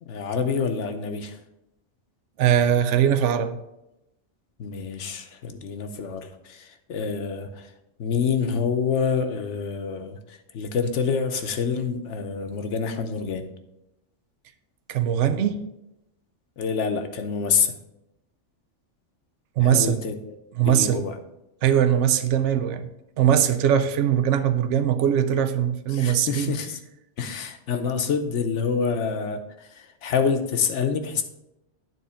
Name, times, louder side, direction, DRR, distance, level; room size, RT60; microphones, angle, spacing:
voice 1, 0.0-1.4 4.6-7.7 8.0-13.5 16.6-17.8 19.6-20.4 20.7-21.2 25.9-26.8 27.2-31.2, left 6 dB, 75° left, 7 dB, 1.1 m, -27 dB
voice 2, 2.4-3.6 14.9-15.7 19.6-20.0 20.6-21.0 21.6-22.9 23.2-26.5, right 9 dB, 80° right, 10 dB, 0.9 m, -21 dB
9.4 x 3.9 x 5.7 m, 0.88 s
omnidirectional pair, 1.2 m